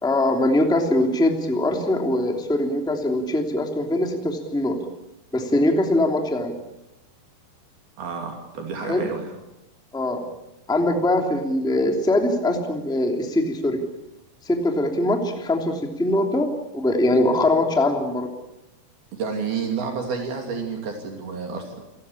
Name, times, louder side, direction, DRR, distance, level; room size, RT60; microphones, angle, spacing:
voice 1, 0.0-4.8 5.3-6.5 8.9-9.1 9.9-10.2 10.7-13.8 14.4-18.3, left 1 dB, ahead, 3 dB, 2.1 m, -22 dB
voice 2, 8.0-9.3 19.1-21.8, right 5 dB, 65° right, 2 dB, 4.6 m, -30 dB
29.0 x 17.0 x 8.6 m, 0.94 s
omnidirectional pair, 4.7 m